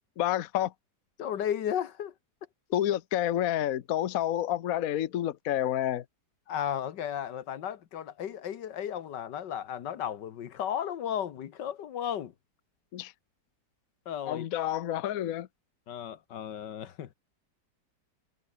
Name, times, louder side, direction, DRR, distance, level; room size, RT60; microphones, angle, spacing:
voice 1, 0.2-0.7 2.7-6.0 12.9-13.1 14.3-15.5, left 12 dB, 60° left, 1.2 m, -29 dB
voice 2, 1.2-2.1 6.5-12.3 14.1-14.5 15.9-17.1, left 9 dB, 80° left, 1.8 m, -34 dB
omnidirectional pair, 1.8 m